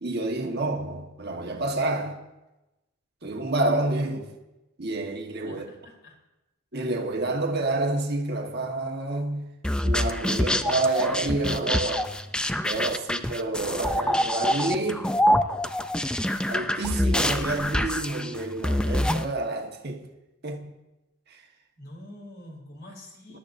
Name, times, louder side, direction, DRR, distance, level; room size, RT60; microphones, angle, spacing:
voice 1, 0.0-2.2 3.2-4.4 4.8-5.6 6.7-9.5 9.8-12.1 12.6-15.1 16.5-20.1 20.4-20.7 21.3-21.4, right 2 dB, 50° right, 1.3 m, -28 dB
voice 2, 5.4-6.2 21.8-23.4, left 1 dB, 45° left, 3.2 m, -45 dB
sound 1, 9.6-19.3, left 1 dB, 5° left, 0.3 m, -26 dB
20.0 x 11.5 x 2.6 m
head